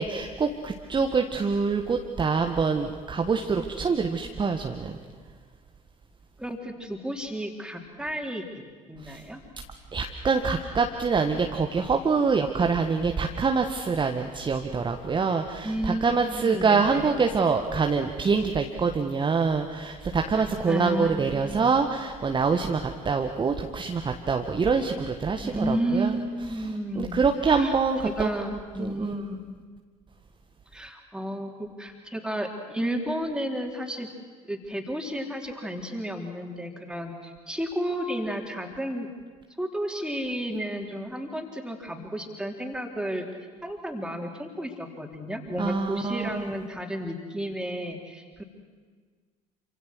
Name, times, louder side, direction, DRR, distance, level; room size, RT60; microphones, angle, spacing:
voice 1, 0.0-5.0 9.0-9.2 9.9-15.7 16.0-26.2 27.0-28.3 28.8-29.1 45.6-46.5, right 5 dB, 25° right, 4 dB, 1.5 m, -25 dB
voice 2, 6.4-9.4 15.6-17.1 20.7-21.7 25.4-27.7 28.0-29.4 30.7-34.1 34.5-39.1 39.6-43.3 43.6-48.4, equal, 5° right, 2 dB, 4.1 m, -32 dB
27.5 x 26.0 x 6.4 m, 1.5 s
figure-of-eight pair, 60°, 19 cm